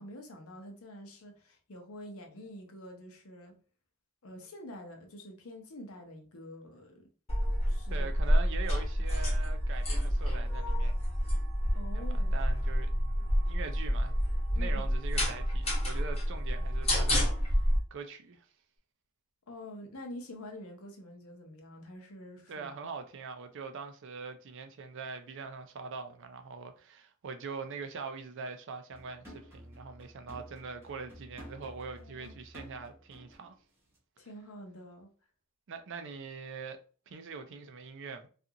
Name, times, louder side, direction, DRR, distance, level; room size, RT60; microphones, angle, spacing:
voice 1, 0.0-3.5 4.2-7.1 7.7-8.1 11.7-12.3 14.5-14.9 19.5-22.7 32.0-32.3 34.2-35.1, left 1 dB, 70° left, 0.7 m, -47 dB
sound 1, 7.3-17.8, equal, 25° left, 0.9 m, -29 dB
voice 2, 7.9-10.9 11.9-12.9 13.5-14.2 14.6-17.6 17.9-18.5 22.5-33.5 35.7-36.8 37.1-38.3, right 5 dB, 55° right, 0.4 m, -43 dB
sound 2, 28.9-33.5 33.8-34.0, equal, 10° right, 0.8 m, -51 dB
2.5 x 2.4 x 2.7 m
head